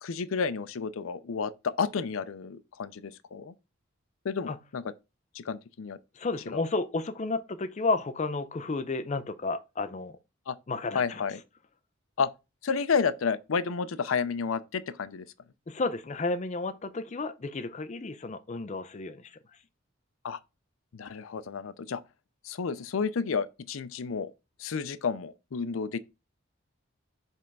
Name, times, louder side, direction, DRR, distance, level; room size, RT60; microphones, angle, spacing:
voice 1, 0.0-1.5 1.8-3.5 4.2-4.8 5.3-6.0 6.5-6.7 10.5-10.6 10.9-11.4 12.2-12.3 12.6-15.3 20.2-20.4 20.9-22.0 22.4-24.3 24.6-26.0, left 5 dB, 85° left, 0.5 m, -31 dB
voice 2, 6.1-10.2 10.7-11.2 15.7-19.4, left 3 dB, 35° left, 0.4 m, -32 dB
5.4 x 3.4 x 5.3 m
head